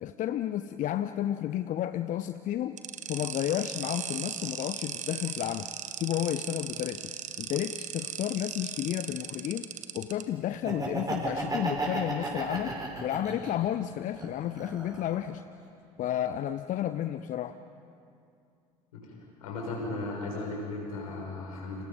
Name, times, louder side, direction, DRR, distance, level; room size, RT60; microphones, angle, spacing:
voice 1, 0.0-5.7 6.0-7.1 7.4-9.7 9.9-15.4 16.0-17.6, left 11 dB, 45° left, 12 dB, 0.7 m, -32 dB
sound 1, 2.8-10.2, right 9 dB, 40° right, 1.4 m, -37 dB
Laughter, 10.5-13.7 14.1-15.2, right 2 dB, 20° right, 6.0 m, -34 dB
voice 2, 19.4-21.8, left 2 dB, 75° left, -2 dB, 6.6 m, -36 dB
29.5 x 27.5 x 5.4 m, 2.5 s
figure-of-eight pair, 60°, 19 cm